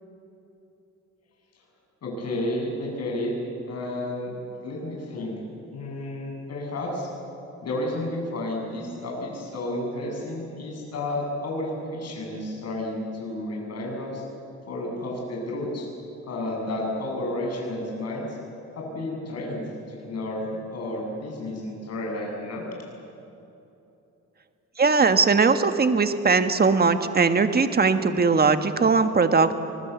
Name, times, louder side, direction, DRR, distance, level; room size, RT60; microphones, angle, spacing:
voice 1, 2.0-3.3 3.7-4.4 4.6-5.4 5.7-7.1 7.6-14.2 14.7-15.9 16.2-18.4 18.7-19.6 19.9-22.7, left 1 dB, 55° left, 0 dB, 7.8 m, -31 dB
voice 2, 24.8-29.5, right 4 dB, 30° right, 8 dB, 1.6 m, -20 dB
25.5 x 20.5 x 8.4 m, 2.9 s
cardioid pair, 90°, 30 cm